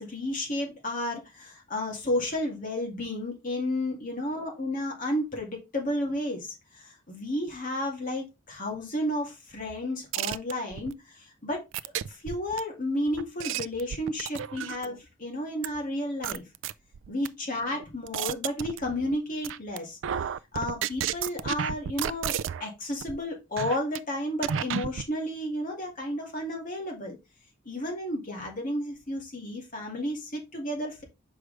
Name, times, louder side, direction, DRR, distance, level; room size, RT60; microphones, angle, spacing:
voice 1, 0.0-11.6 12.1-16.4 17.1-20.3 20.5-27.2 27.7-31.0, left 1 dB, 40° left, 2.1 m, -32 dB
sound 1, 10.1-10.9 11.7-12.6 13.2-15.0 15.6-15.7 16.2-17.3 17.8-19.2 19.4-19.8 20.0-22.7 23.0-23.2 23.6-24.0 24.4-25.1, right 9 dB, 65° right, 0.3 m, -32 dB
6.2 x 4.7 x 3.3 m
head